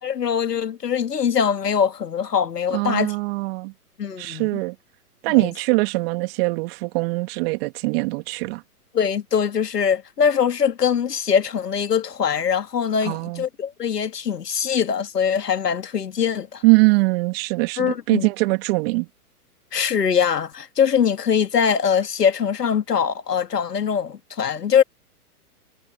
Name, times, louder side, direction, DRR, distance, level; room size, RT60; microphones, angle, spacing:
voice 1, 0.0-3.2 4.0-4.5 5.3-5.5 8.9-16.6 17.8-18.3 19.7-24.8, left 7 dB, 90° left, 2.1 m, -22 dB
voice 2, 2.7-3.7 4.2-4.8 5.2-8.6 13.1-13.4 16.6-19.1, right 27 dB, 40° right, 1.9 m, -22 dB
hypercardioid pair, 130°, 46 cm